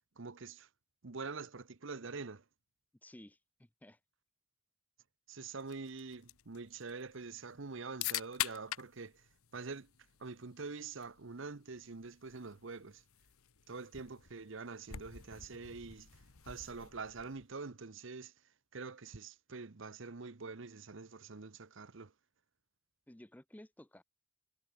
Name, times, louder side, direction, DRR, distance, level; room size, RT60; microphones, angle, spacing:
voice 1, 0.2-0.7 1.0-2.4 5.3-9.3 9.5-9.9 10.2-13.0 13.7-16.1 16.4-18.3 18.7-22.1, right 4 dB, 60° right, 0.9 m, -45 dB
voice 2, 3.0-4.0 23.1-24.0, left 1 dB, 5° left, 0.5 m, -55 dB
sound 1, 5.6-17.5, left 12 dB, 85° left, 1.3 m, -46 dB
head